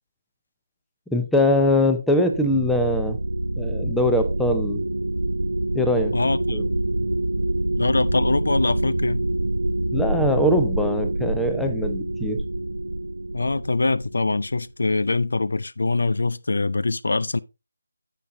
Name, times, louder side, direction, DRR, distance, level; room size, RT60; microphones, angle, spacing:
voice 1, 1.1-3.2 3.6-4.8 5.7-6.1 6.5-6.7 9.9-12.4, left 1 dB, ahead, 0.7 m, -22 dB
sound 1, 2.3-14.6, right 1 dB, 85° right, 0.6 m, -26 dB
voice 2, 6.1-6.6 7.8-9.2 13.3-17.4, left 3 dB, 65° left, 0.4 m, -23 dB
15.0 x 5.7 x 2.6 m
figure-of-eight pair, 160°, 0 cm